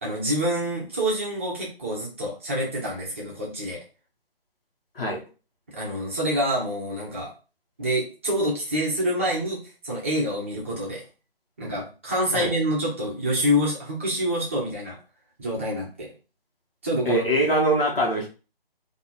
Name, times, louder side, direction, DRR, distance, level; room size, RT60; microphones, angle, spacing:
voice 1, 0.0-3.8 5.7-7.3 7.8-11.0 11.6-15.0 15.4-16.1 16.8-17.3, equal, 15° right, -4 dB, 0.6 m, -27 dB
voice 2, 17.1-18.3, right 1 dB, 70° left, -3 dB, 1.6 m, -22 dB
3.8 x 2.7 x 4.2 m, 0.34 s
figure-of-eight pair, 155°, 30 cm